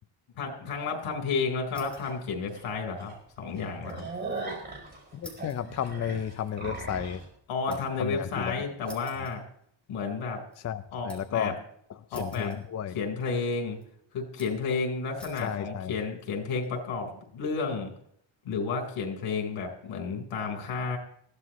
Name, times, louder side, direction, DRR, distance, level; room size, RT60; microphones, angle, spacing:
voice 1, 0.4-4.1 7.5-9.4 9.9-10.4 10.9-11.5 12.1-12.6 12.9-13.8 14.1-17.9 18.4-21.0, left 4 dB, 90° left, 3 dB, 4.3 m, -32 dB
sound 1, 1.7-2.2 2.5-4.1 4.4-4.5 5.2-8.1 8.8-10.0 10.4-11.4 12.1-13.0 13.3-13.8 14.4-14.7 15.2-15.6 16.2-16.7, left 1 dB, ahead, 3.3 m, -51 dB
sound 2, 2.0-2.1 2.5-2.6 3.0-3.1 3.5-7.2, right 3 dB, 20° right, 5.6 m, -38 dB
voice 2, 5.1-7.2 7.7-8.5 9.1-9.3 10.6-11.5 11.9-12.9 15.4-15.9, left 9 dB, 35° left, 11 dB, 0.5 m, -33 dB
21.0 x 15.5 x 3.1 m, 0.68 s
cardioid pair, 175°, 48 cm